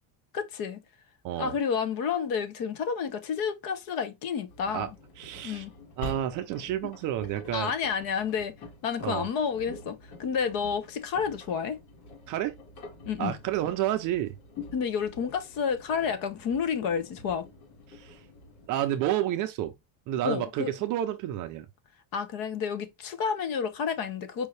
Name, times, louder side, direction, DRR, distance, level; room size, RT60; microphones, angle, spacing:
voice 1, 0.3-0.8 1.4-4.9 5.4-5.7 7.5-8.5 8.8-11.8 13.1-13.4 14.7-17.5 20.2-20.7 22.1-24.5, left 6 dB, 45° left, 0.8 m, -30 dB
voice 2, 1.2-1.6 4.7-4.9 5.2-5.6 6.0-7.7 9.0-9.3 12.3-12.5 13.2-14.4 17.9-18.2 18.7-19.7 20.1-21.7, right 12 dB, 40° right, 0.5 m, -30 dB
Engine, 4.5-18.7, left 1 dB, 70° left, 2.0 m, -47 dB
5.0 x 2.7 x 3.2 m
cardioid pair, 165°, 48 cm